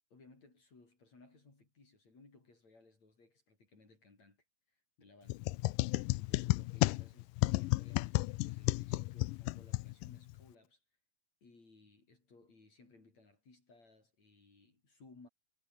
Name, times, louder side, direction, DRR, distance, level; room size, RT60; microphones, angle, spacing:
voice 1, 0.1-5.4 6.1-10.8 11.4-15.3, left 3 dB, 50° left, 7.7 m, -62 dB
sound 1, 5.3-10.4, left 20 dB, 80° left, 2.1 m, -33 dB
omnidirectional pair, 4.0 m